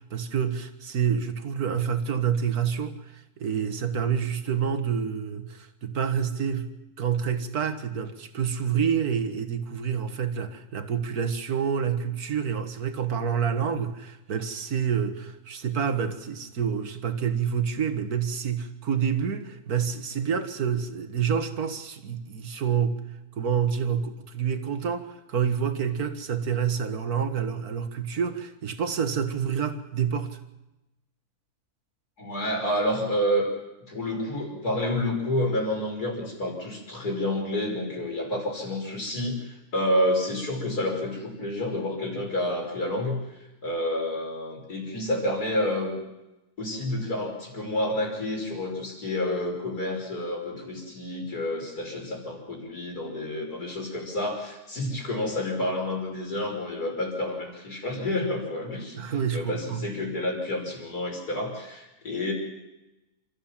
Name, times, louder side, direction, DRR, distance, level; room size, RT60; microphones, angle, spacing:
voice 1, 0.0-6.7 7.0-23.0 23.3-30.4 58.9-59.8, right 7 dB, 70° right, 9 dB, 2.1 m, -28 dB
voice 2, 32.2-33.5 33.9-43.2 43.6-45.9 46.6-59.1 59.3-62.3, left 1 dB, 75° left, 0 dB, 6.1 m, -29 dB
28.5 x 14.0 x 7.4 m, 0.98 s
omnidirectional pair, 1.6 m